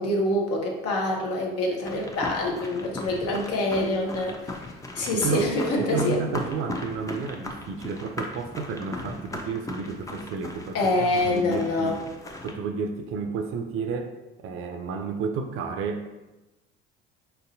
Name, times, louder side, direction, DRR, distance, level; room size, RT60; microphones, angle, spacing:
voice 1, 0.0-4.3 4.9-6.2 10.7-12.0, left 2 dB, 50° left, -1 dB, 0.9 m, -25 dB
sound 1, 1.8-12.5, left 2 dB, 10° left, 0.5 m, -38 dB
voice 2, 5.1-5.5 5.8-11.9 12.4-16.1, right 5 dB, 45° right, 6 dB, 0.4 m, -31 dB
4.3 x 2.6 x 2.6 m, 1.1 s
figure-of-eight pair, 55°, 30 cm